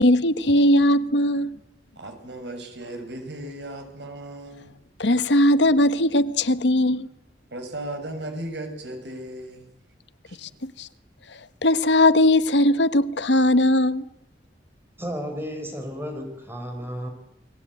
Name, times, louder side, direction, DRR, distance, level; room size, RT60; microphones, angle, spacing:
voice 1, 0.0-1.6 5.0-7.1 10.4-10.9 11.6-14.0, left 1 dB, 85° left, 1.3 m, -19 dB
voice 2, 1.9-4.7 7.5-9.7 10.3-10.4, right 1 dB, 80° right, 6.7 m, -36 dB
voice 3, 15.0-17.1, equal, 15° right, 4.5 m, -33 dB
29.0 x 21.0 x 9.2 m
head